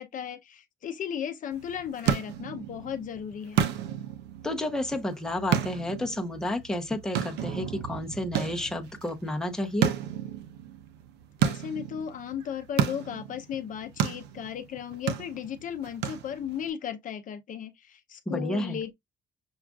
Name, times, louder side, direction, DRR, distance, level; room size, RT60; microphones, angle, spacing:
voice 1, 0.0-3.6 11.4-18.9, left 9 dB, 50° left, 0.6 m, -35 dB
sound 1, 1.5-16.7, right 9 dB, 85° right, 0.6 m, -32 dB
voice 2, 4.4-9.9 18.3-18.8, left 1 dB, 5° left, 0.7 m, -31 dB
6.1 x 2.4 x 2.3 m
cardioid pair, 110°, 17 cm